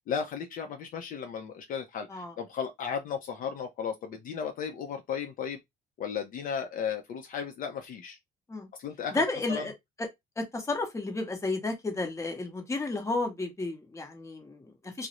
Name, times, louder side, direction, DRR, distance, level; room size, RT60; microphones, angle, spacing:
voice 1, 0.1-5.6 6.0-8.2 8.8-9.2 9.5-9.7, left 7 dB, 55° left, 0.5 m, -35 dB
voice 2, 9.1-9.7 10.4-15.1, left 2 dB, 15° left, 0.9 m, -32 dB
2.4 x 2.0 x 2.9 m
cardioid pair, 110°, 17 cm